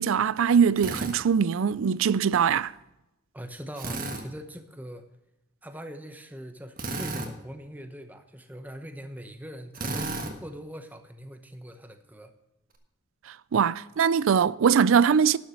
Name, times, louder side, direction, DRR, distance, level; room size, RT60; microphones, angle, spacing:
voice 1, 0.0-2.7 13.5-15.4, right 7 dB, 80° right, 0.4 m, -22 dB
Drill, 0.8-1.2 3.8-4.2 6.8-7.3 9.7-10.3, right 2 dB, 45° right, 1.4 m, -32 dB
voice 2, 3.3-5.1 5.6-12.3, equal, 10° right, 0.8 m, -42 dB
12.0 x 7.1 x 6.4 m
head